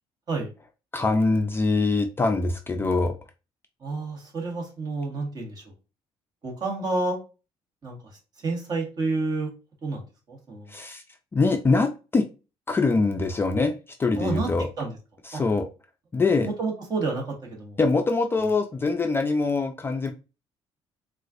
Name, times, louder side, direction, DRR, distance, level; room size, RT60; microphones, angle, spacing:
voice 1, 0.9-3.1 10.7-11.0 11.3-12.3 12.7-14.7 15.2-15.7 16.1-16.5 17.8-20.1, left 3 dB, 20° left, 5 dB, 0.4 m, -23 dB
voice 2, 3.8-5.6 6.4-7.2 7.8-8.0 8.4-9.5 9.8-10.0 10.3-10.7 14.2-14.5 14.8-14.9 15.3-15.4 16.4-17.2 17.5-17.8, right 3 dB, 40° right, -1 dB, 1.5 m, -29 dB
4.1 x 2.4 x 2.5 m, 0.31 s
cardioid pair, 120°, 11 cm